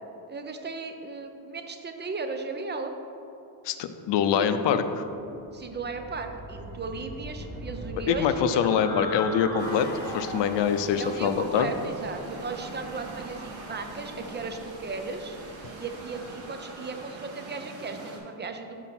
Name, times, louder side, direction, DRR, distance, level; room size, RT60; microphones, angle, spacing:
voice 1, 0.3-2.9 4.4-4.5 5.5-8.8 11.0-15.4 15.8-18.8, right 4 dB, 25° right, 6 dB, 0.5 m, -36 dB
voice 2, 3.6-5.0 8.1-11.7, left 7 dB, 65° left, 9 dB, 0.6 m, -24 dB
sound 1, 5.2-17.0, left 1 dB, 5° left, 1.0 m, -42 dB
sound 2, 9.6-18.2, right 2 dB, 70° right, 1.4 m, -42 dB
5.9 x 4.5 x 5.9 m, 2.8 s
cardioid pair, 115°, 47 cm